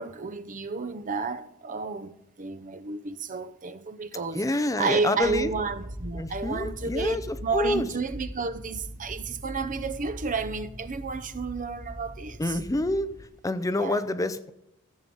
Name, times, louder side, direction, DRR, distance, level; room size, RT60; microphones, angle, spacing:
voice 1, 0.0-2.1 2.4-12.6 13.7-14.1, right 4 dB, 35° right, 0.7 m, -31 dB
voice 2, 4.3-5.5 6.1-7.9 12.4-13.1 13.4-14.5, left 2 dB, 15° left, 0.5 m, -27 dB
sound 1, 5.2-13.3, equal, 75° right, 3.1 m, -41 dB
14.5 x 7.7 x 5.4 m
head